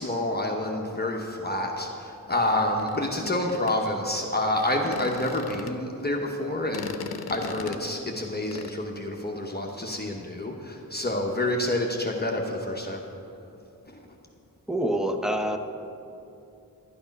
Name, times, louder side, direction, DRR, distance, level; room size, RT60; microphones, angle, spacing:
voice 1, 0.0-13.0, left 1 dB, 25° left, 0 dB, 1.1 m, -28 dB
sound 1, 2.8-5.9 6.5-8.7, left 5 dB, 80° left, 0.7 m, -39 dB
voice 2, 14.7-15.6, right 1 dB, ahead, 6 dB, 0.9 m, -26 dB
12.0 x 8.8 x 5.4 m, 2.8 s
cardioid pair, 50°, 37 cm